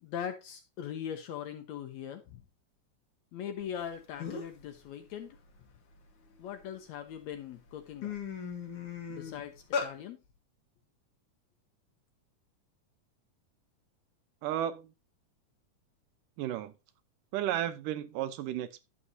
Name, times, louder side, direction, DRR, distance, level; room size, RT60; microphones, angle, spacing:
voice 1, 0.0-2.4 3.3-5.4 6.4-8.2 9.1-10.2, left 9 dB, 70° left, 1.8 m, -40 dB
sound 1, 3.8-3.9 4.2-4.6 5.1-6.6 7.2-7.4 7.7-9.9, left 6 dB, 55° left, 1.8 m, -37 dB
voice 2, 14.4-14.9 16.4-16.7 17.3-18.8, right 11 dB, 85° right, 2.4 m, -33 dB
11.0 x 7.1 x 2.7 m
omnidirectional pair, 3.8 m